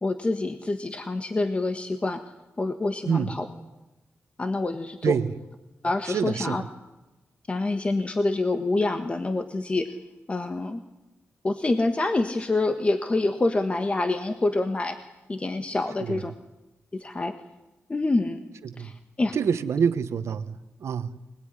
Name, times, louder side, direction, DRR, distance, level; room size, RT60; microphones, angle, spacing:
voice 1, 0.0-2.2 2.6-3.4 4.4-5.2 5.8-6.6 7.5-10.0 10.3-10.8 11.4-15.0 15.3-16.3 16.9-17.3 17.9-18.4 18.8-18.9 19.2-19.4, left 2 dB, 25° left, 7 dB, 1.4 m, -26 dB
voice 2, 3.0-3.4 5.0-5.3 6.1-6.7 16.0-16.2 18.6-18.9 19.3-21.2, right 7 dB, 85° right, 12 dB, 1.2 m, -27 dB
25.5 x 20.0 x 9.9 m, 1.0 s
wide cardioid pair, 130°, 5 cm